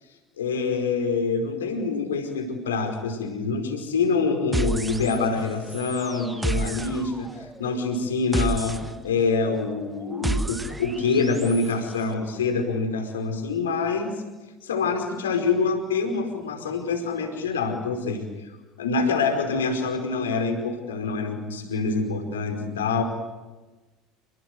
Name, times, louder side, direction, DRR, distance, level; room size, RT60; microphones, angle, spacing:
voice 1, 0.4-14.1 14.6-18.2 18.8-23.0, left 4 dB, 70° left, 5 dB, 4.9 m, -26 dB
sound 1, 4.5-5.4 5.7-11.7, right 2 dB, 10° right, 1.9 m, -31 dB
29.5 x 22.0 x 8.0 m, 1.2 s
figure-of-eight pair, 65°, 0 cm